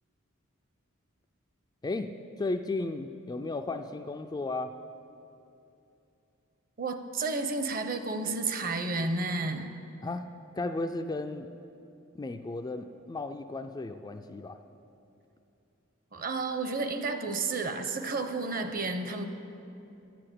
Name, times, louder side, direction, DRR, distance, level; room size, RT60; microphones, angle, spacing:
voice 1, 1.8-4.8 10.0-10.3 10.5-11.5 12.1-14.6, left 2 dB, 20° left, 7 dB, 0.3 m, -34 dB
voice 2, 6.8-9.7 16.1-19.2, right 3 dB, 40° right, 8 dB, 0.8 m, -31 dB
11.0 x 7.7 x 8.4 m, 2.8 s
head